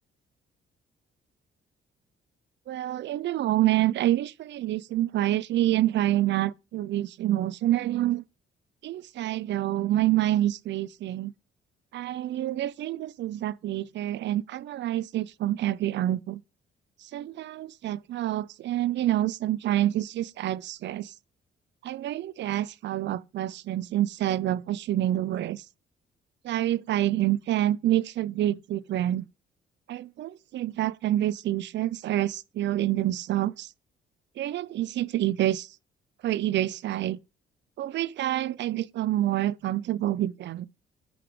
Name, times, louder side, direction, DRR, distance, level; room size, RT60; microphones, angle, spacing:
voice 1, 2.7-8.2 8.8-11.3 11.9-16.4 17.0-21.1 21.8-25.6 26.4-29.2 29.9-33.7 34.4-35.7 36.2-37.2 37.8-40.7, right 13 dB, 65° right, 0.5 m, -27 dB
10.5 x 5.0 x 3.6 m
cardioid pair, 90°, 20 cm